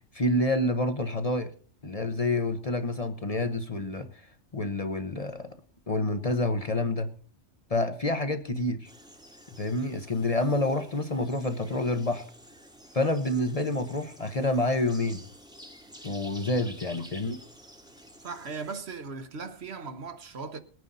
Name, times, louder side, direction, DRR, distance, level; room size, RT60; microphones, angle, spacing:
voice 1, 0.1-1.5 1.8-4.1 4.5-5.5 5.9-7.1 7.7-8.9 9.6-12.2 12.9-15.2 16.0-17.4, left 2 dB, 35° left, 0.9 m, -28 dB
sound 1, 8.8-18.8, equal, 5° right, 1.1 m, -50 dB
voice 2, 18.2-20.6, right 4 dB, 65° right, 1.4 m, -38 dB
19.5 x 9.4 x 4.0 m
omnidirectional pair, 1.2 m